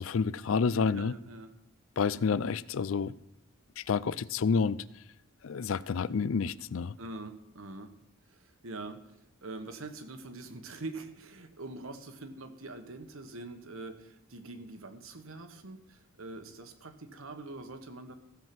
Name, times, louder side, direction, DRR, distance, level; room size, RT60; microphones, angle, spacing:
voice 1, 0.0-1.1 2.0-3.1 3.8-4.8 5.4-7.0, left 5 dB, 70° left, 0.4 m, -29 dB
voice 2, 0.9-1.5 7.0-7.9 8.3-18.2, right 2 dB, 75° right, 1.4 m, -44 dB
15.5 x 7.4 x 6.1 m
head